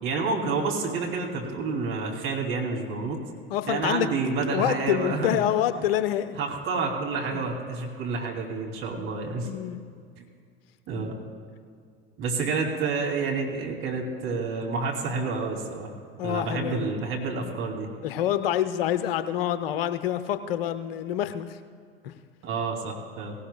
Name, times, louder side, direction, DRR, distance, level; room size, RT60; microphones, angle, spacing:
voice 1, 0.0-3.2 3.7-5.4 6.4-9.5 10.2-10.3 10.9-11.1 12.2-15.9 16.2-17.9 22.4-23.3, right 4 dB, 45° right, 0 dB, 2.9 m, -29 dB
voice 2, 3.5-4.1 4.5-6.4 7.3-7.5 9.4-9.8 16.2-16.9 18.0-21.5 22.0-22.1, left 11 dB, 70° left, 11 dB, 0.7 m, -27 dB
17.5 x 17.5 x 2.3 m, 2.2 s
figure-of-eight pair, 70°, 30 cm